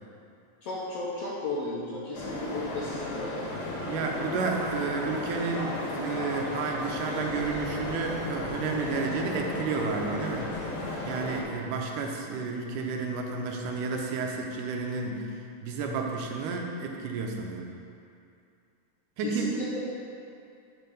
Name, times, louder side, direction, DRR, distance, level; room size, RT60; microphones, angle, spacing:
voice 1, 0.6-3.5 19.2-19.8, left 2 dB, 75° left, -6 dB, 1.5 m, -34 dB
sound 1, 2.1-11.4, left 2 dB, 55° left, 1.7 m, -34 dB
voice 2, 3.8-10.5 11.0-17.7 19.2-19.5, right 4 dB, 80° right, 1 dB, 2.2 m, -31 dB
5.8 x 4.7 x 6.5 m, 2.5 s
omnidirectional pair, 3.6 m